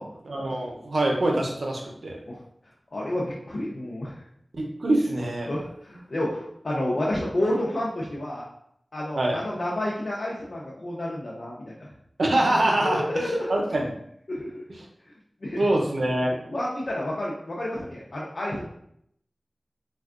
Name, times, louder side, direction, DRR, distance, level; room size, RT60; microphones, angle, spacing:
voice 1, 0.3-2.2 4.6-5.5 9.2-9.4 12.2-13.2 13.5-13.9 15.6-16.3, right 1 dB, 85° right, 0 dB, 0.6 m, -24 dB
voice 2, 2.9-4.2 5.4-8.5 8.9-11.9 12.8-13.6 14.3-14.6 15.4-15.7 16.3-18.6, left 1 dB, 60° left, -5 dB, 0.6 m, -30 dB
4.3 x 2.3 x 2.4 m, 0.73 s
wide cardioid pair, 75°, 0 cm